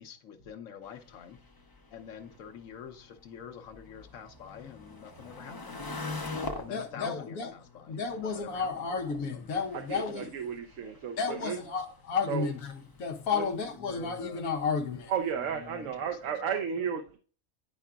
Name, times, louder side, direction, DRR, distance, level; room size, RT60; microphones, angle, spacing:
voice 1, 0.0-1.4 1.9-6.0 6.5-8.7 9.2-9.4 13.8-14.5 15.4-16.9, left 8 dB, 70° left, 1.2 m, -46 dB
sound 1, 0.8-16.4, left 3 dB, 25° left, 0.4 m, -46 dB
voice 2, 6.7-7.5 7.9-10.3 11.2-12.7 13.0-15.1, left 5 dB, 90° left, 1.2 m, -32 dB
voice 3, 9.7-11.6 12.3-12.5 13.3-13.5 15.1-17.2, right 7 dB, 70° right, 1.0 m, -33 dB
9.9 x 4.8 x 2.3 m
omnidirectional pair, 1.4 m